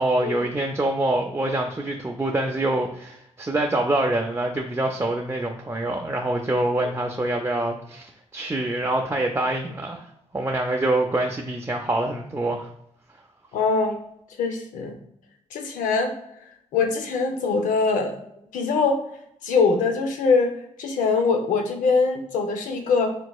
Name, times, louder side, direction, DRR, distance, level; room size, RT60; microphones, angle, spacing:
voice 1, 0.0-10.1 10.3-12.7, right 2 dB, 20° right, 1 dB, 0.4 m, -25 dB
voice 2, 13.5-14.0 14.4-14.9 15.5-16.1 16.7-18.2 18.5-19.0 19.4-20.5 20.8-23.2, left 4 dB, 85° left, 5 dB, 0.6 m, -22 dB
3.8 x 2.8 x 2.3 m, 0.76 s
supercardioid pair, 50°, 13 cm